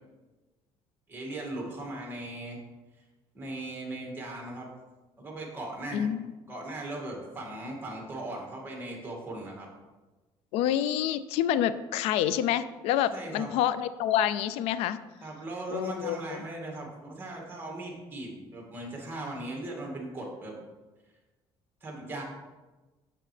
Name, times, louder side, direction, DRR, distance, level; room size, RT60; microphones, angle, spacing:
voice 1, 1.1-2.6 3.3-4.7 5.2-6.1 6.5-9.7 13.1-13.5 15.2-20.6 21.8-22.2, right 2 dB, 20° right, -1 dB, 2.2 m, -38 dB
voice 2, 5.9-6.2 10.5-15.0 15.7-16.2, left 11 dB, 90° left, 14 dB, 0.4 m, -27 dB
7.6 x 7.1 x 3.3 m, 1.2 s
cardioid pair, 120°, 10 cm